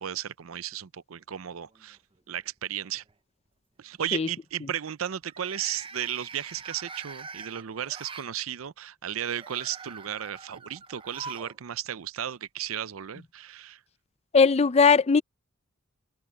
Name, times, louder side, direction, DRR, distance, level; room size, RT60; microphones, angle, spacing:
voice 1, 0.0-2.0 2.3-3.0 3.8-13.8, right 10 dB, 80° right, 0.6 m, -34 dB
sound 1, 1.7-2.3 2.7-3.1 5.2-8.3 9.1-11.6 11.8-11.9 13.1-13.2, right 4 dB, 25° right, 0.6 m, -44 dB
voice 2, 14.3-15.2, left 5 dB, 30° left, 0.5 m, -19 dB
head